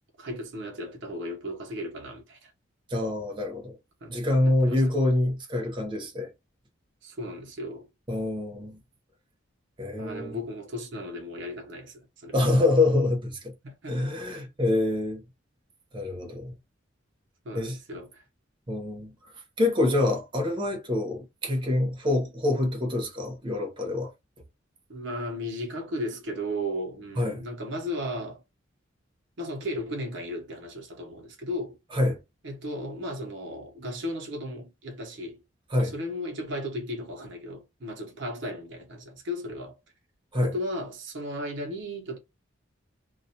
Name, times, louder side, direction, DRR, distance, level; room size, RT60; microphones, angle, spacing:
voice 1, 0.2-2.5 4.0-4.8 7.0-7.9 10.0-12.4 13.6-14.0 14.3-14.5 17.4-18.2 24.9-28.4 29.4-31.8 32.4-35.4 35.8-39.8 40.4-42.2, equal, 65° right, 0.7 m, -35 dB
voice 2, 2.9-3.8 4.1-6.3 8.1-8.8 9.8-10.4 12.3-13.4 13.9-15.2 15.9-16.5 17.5-17.8 18.7-19.1 19.6-24.1 27.2-27.4 31.9-32.2 35.7-35.9 40.3-40.5, left 2 dB, 25° right, 0.8 m, -26 dB
2.3 x 2.1 x 2.7 m
head